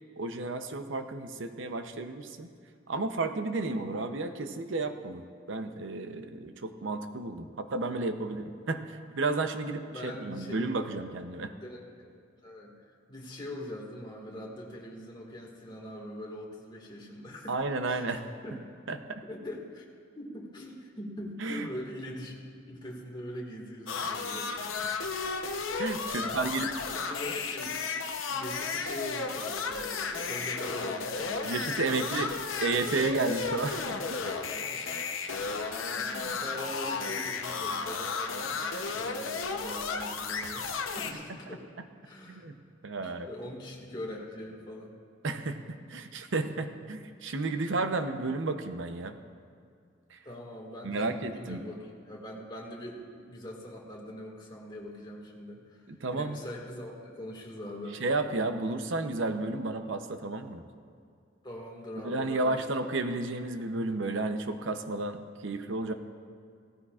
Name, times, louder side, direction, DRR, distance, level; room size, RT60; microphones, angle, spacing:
voice 1, 0.2-2.5 2.9-11.5 17.5-18.2 18.9-19.2 21.4-21.7 25.8-26.7 31.4-32.3 32.6-34.2 42.3-42.6 42.8-43.3 45.2-49.2 50.1-50.2 50.8-51.6 55.9-56.4 58.0-60.6 62.0-65.9, right 3 dB, 70° right, 8 dB, 0.7 m, -32 dB
voice 2, 9.9-10.8 11.6-12.1 12.4-12.7 13.1-17.5 17.9-18.2 18.4-18.7 19.3-19.9 20.2-22.4 22.7-24.5 26.1-27.9 28.3-32.3 34.7-35.3 35.9-41.7 42.0-42.5 43.0-45.0 50.2-58.0 61.4-62.8, left 1 dB, 25° left, -2 dB, 1.9 m, -42 dB
sound 1, 23.9-41.1, left 4 dB, 80° left, 0.8 m, -33 dB
17.0 x 14.0 x 2.4 m, 2.3 s
head